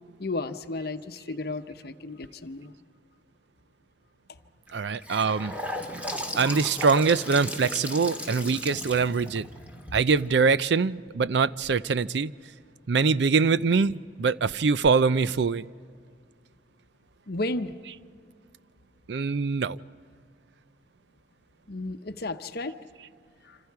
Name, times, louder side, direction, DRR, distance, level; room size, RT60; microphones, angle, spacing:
voice 1, 0.2-2.7 17.3-17.7 21.7-22.8 23.4-23.6, left 2 dB, 55° left, 0.9 m, -33 dB
Gurgling / Sink (filling or washing) / Bathtub (filling or washing), 4.7-10.7, left 1 dB, 10° right, 1.8 m, -36 dB
voice 2, 4.7-5.5 6.4-9.5 9.9-12.3 12.9-15.7 19.1-19.8, right 5 dB, 65° right, 0.5 m, -23 dB
26.5 x 26.5 x 4.7 m
head